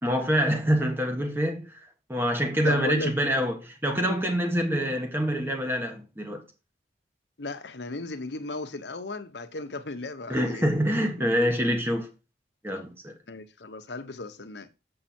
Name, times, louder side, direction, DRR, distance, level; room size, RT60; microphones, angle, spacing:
voice 1, 0.0-1.8 2.1-6.4 10.3-12.1 12.6-13.1, equal, 15° right, 1.4 m, -26 dB
voice 2, 2.6-3.1 7.4-10.7 13.3-14.7, left 2 dB, 75° left, 1.0 m, -35 dB
7.6 x 5.5 x 4.3 m
head